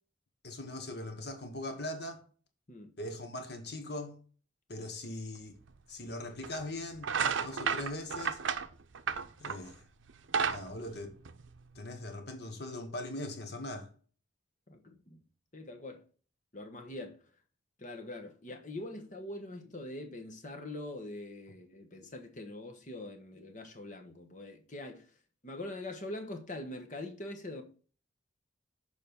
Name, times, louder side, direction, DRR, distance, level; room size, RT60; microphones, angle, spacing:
voice 1, 0.4-2.2 3.0-4.2 4.7-5.6 5.9-8.4 9.4-9.8 10.5-11.1 11.7-13.9, left 1 dB, 55° left, 1.4 m, -40 dB
sound 1, 5.7-5.8 6.4-6.6 7.0-9.7 10.1-11.8, right 6 dB, 75° right, 0.6 m, -32 dB
voice 2, 14.7-15.2 15.5-16.0 16.5-17.2 17.8-25.1 25.4-27.6, left 1 dB, 40° left, 1.3 m, -43 dB
7.0 x 4.8 x 6.9 m
head